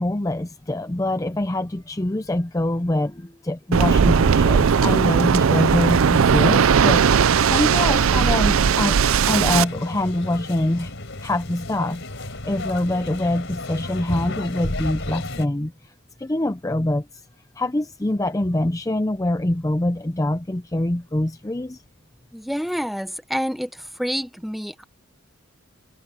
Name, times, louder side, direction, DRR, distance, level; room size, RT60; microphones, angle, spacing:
voice 1, 0.0-9.0 9.3-10.9 11.2-15.9 16.2-17.2 17.6-21.8, left 1 dB, 15° left, 0.5 m, -24 dB
Waves surf, 3.7-9.6, right 6 dB, 90° right, 0.5 m, -17 dB
sound 1, 7.5-15.5, left 2 dB, 65° left, 4.5 m, -33 dB
voice 2, 22.3-24.8, equal, ahead, 1.1 m, -28 dB
head